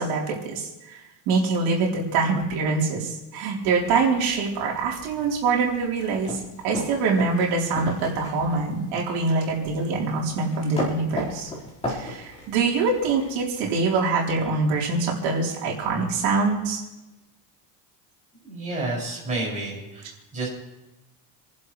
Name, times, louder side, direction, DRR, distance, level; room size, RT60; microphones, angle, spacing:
voice 1, 0.0-11.5 11.9-16.8, right 4 dB, 80° right, -3 dB, 3.9 m, -24 dB
sound 1, 3.6-13.8, left 1 dB, 15° left, 4.6 m, -37 dB
voice 2, 18.4-20.5, right 2 dB, 15° right, -6 dB, 6.2 m, -30 dB
28.5 x 11.5 x 3.3 m, 1.0 s
cardioid pair, 175°, 47 cm